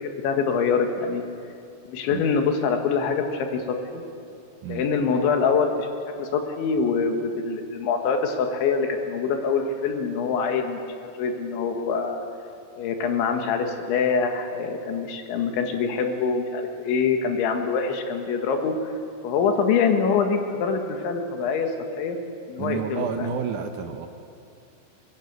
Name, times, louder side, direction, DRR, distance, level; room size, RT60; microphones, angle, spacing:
voice 1, 0.0-1.2 1.9-4.0 4.7-5.9 6.2-12.2 12.8-18.7 19.2-21.7 22.0-22.2 22.5-23.3, left 5 dB, 90° left, 4 dB, 4.1 m, -24 dB
voice 2, 22.6-24.1, right 6 dB, 75° right, 5 dB, 1.8 m, -30 dB
21.5 x 20.5 x 8.2 m, 2.6 s
omnidirectional pair, 5.2 m